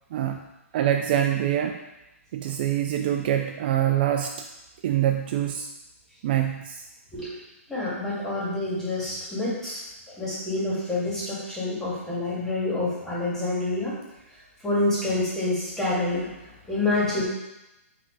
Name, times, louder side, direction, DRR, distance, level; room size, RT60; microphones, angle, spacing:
voice 1, 0.1-0.4 0.7-1.8 2.3-4.3 4.8-5.7 6.2-6.8, right 11 dB, 40° right, 5 dB, 0.4 m, -25 dB
voice 2, 7.7-9.8 10.1-14.0 14.6-17.2, left 2 dB, 5° left, -8 dB, 2.3 m, -27 dB
8.1 x 3.4 x 4.0 m, 0.95 s
hypercardioid pair, 150°, 8 cm